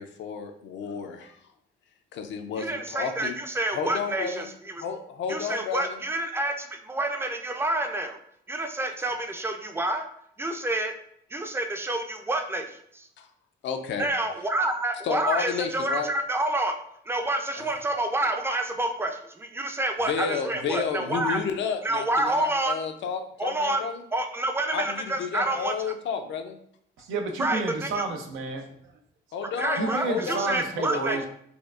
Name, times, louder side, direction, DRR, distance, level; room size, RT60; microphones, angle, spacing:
voice 1, 0.0-1.4 2.1-3.4 3.7-4.5 4.8-6.0 13.2-13.3 13.6-14.1 15.0-16.1 17.6-17.7 20.0-24.0 24.7-26.6 29.3-31.3, left 6 dB, 70° left, 6 dB, 0.5 m, -32 dB
voice 2, 2.6-4.8 5.3-8.2 8.5-10.1 10.4-10.9 11.3-13.1 14.0-16.8 17.1-21.4 21.8-22.8 23.4-23.8 24.1-25.7 27.4-28.0 29.6-31.2, right 1 dB, 10° right, 5 dB, 0.4 m, -28 dB
voice 3, 27.0-28.7 29.8-31.3, right 3 dB, 90° right, 4 dB, 0.5 m, -30 dB
4.3 x 2.3 x 2.4 m, 0.69 s
cardioid pair, 90°, 20 cm